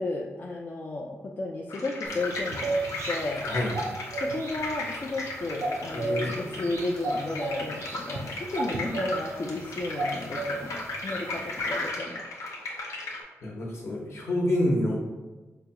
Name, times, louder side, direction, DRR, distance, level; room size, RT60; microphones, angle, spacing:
voice 1, 0.0-2.8 3.1-3.5 4.2-12.2, left 2 dB, 35° left, -1 dB, 0.3 m, -33 dB
sound 1, 1.7-13.2, left 2 dB, 90° left, 0.7 m, -36 dB
sound 2, 2.1-11.9, right 2 dB, 70° right, 0.5 m, -35 dB
voice 2, 3.4-3.8 5.9-6.5 13.4-15.0, left 1 dB, 60° left, -2 dB, 0.9 m, -27 dB
4.8 x 2.2 x 2.8 m, 1.2 s
wide cardioid pair, 130°, 5 cm